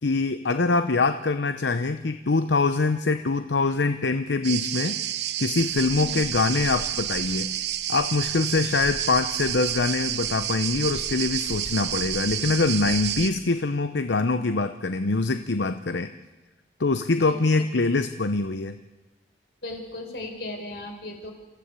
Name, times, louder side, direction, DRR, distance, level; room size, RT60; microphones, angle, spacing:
voice 1, 0.0-5.0 5.4-7.5 7.9-16.1 16.8-18.8, left 3 dB, 85° left, 10 dB, 0.8 m, -24 dB
sound 1, 4.4-13.3, right 11 dB, 70° right, 0.9 m, -29 dB
voice 2, 19.6-21.3, left 1 dB, 65° left, 4 dB, 4.5 m, -36 dB
28.5 x 15.0 x 8.3 m, 1.2 s
head